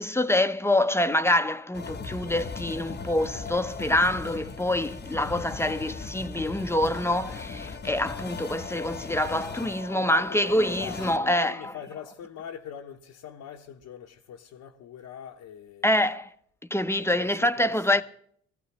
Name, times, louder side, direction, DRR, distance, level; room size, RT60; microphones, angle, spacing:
voice 1, 0.0-11.7 15.8-16.3 16.7-18.0, left 1 dB, 10° left, 0.8 m, -26 dB
sound 1, 1.7-11.2, left 5 dB, 30° left, 1.1 m, -38 dB
voice 2, 9.9-16.1 17.0-18.0, left 9 dB, 70° left, 1.1 m, -42 dB
20.5 x 15.0 x 3.1 m
supercardioid pair, 65°, 31 cm